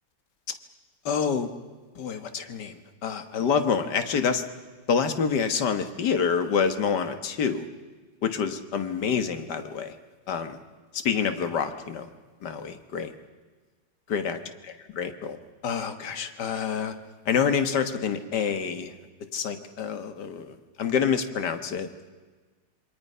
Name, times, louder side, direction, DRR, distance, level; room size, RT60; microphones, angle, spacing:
voice 1, 1.1-1.5 2.0-2.8 3.0-4.4 4.9-7.7 8.2-10.0 10.3-10.6 11.0-12.1 12.4-13.1 14.1-15.4 15.6-17.0 17.3-18.9 19.3-21.9, left 6 dB, 65° left, 8 dB, 2.0 m, -27 dB
27.5 x 23.5 x 5.6 m, 1.4 s
omnidirectional pair, 2.0 m